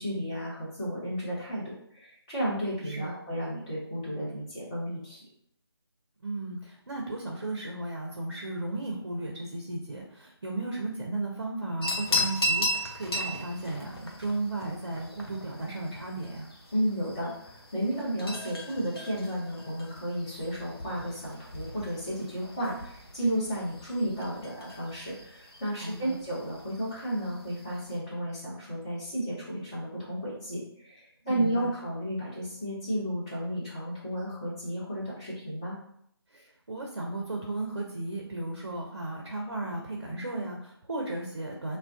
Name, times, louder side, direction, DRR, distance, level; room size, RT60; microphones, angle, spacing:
voice 1, 0.0-5.2 16.7-35.7, equal, 15° left, -9 dB, 0.8 m, -33 dB
voice 2, 2.8-3.2 6.2-16.5 25.8-26.1 31.2-31.7 36.3-41.8, right 2 dB, 50° right, -1 dB, 0.6 m, -35 dB
sound 1, 11.8-28.0, left 1 dB, 65° left, 0.6 m, -37 dB
2.4 x 2.2 x 3.5 m, 0.70 s
figure-of-eight pair, 160°, 14 cm